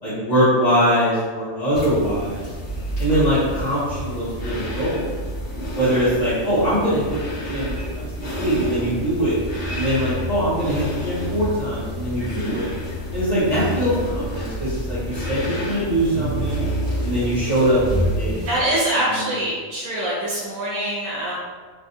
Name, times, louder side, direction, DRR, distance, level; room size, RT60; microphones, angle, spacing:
voice 1, 0.0-2.4 3.0-5.1 5.7-9.4 9.7-12.7 13.1-16.7 17.0-18.5 19.1-19.4, equal, 35° left, -14 dB, 0.9 m, -22 dB
sound 1, 1.7-18.6, equal, 10° left, 1.2 m, -28 dB
voice 2, 18.4-21.3, right 1 dB, 90° right, -6 dB, 1.1 m, -24 dB
3.3 x 2.5 x 2.6 m, 1.5 s
omnidirectional pair, 1.4 m